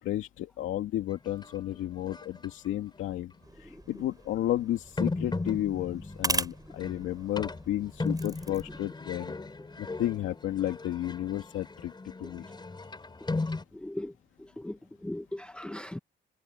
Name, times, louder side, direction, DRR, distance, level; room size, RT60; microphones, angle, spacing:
voice 1, 0.0-3.3 3.6-9.3 9.8-11.9 12.2-12.5, left 13 dB, 85° left, 2.3 m, -32 dB
sound 1, 1.1-1.6 2.1-2.7 3.4-3.5 5.0-13.6, left 3 dB, 20° left, 3.9 m, -37 dB
sound 2, 3.4-8.8, right 2 dB, 20° right, 7.8 m, -38 dB
voice 2, 13.7-14.1 14.4-16.0, left 1 dB, 5° left, 0.7 m, -39 dB
cardioid pair, 90°, 20 cm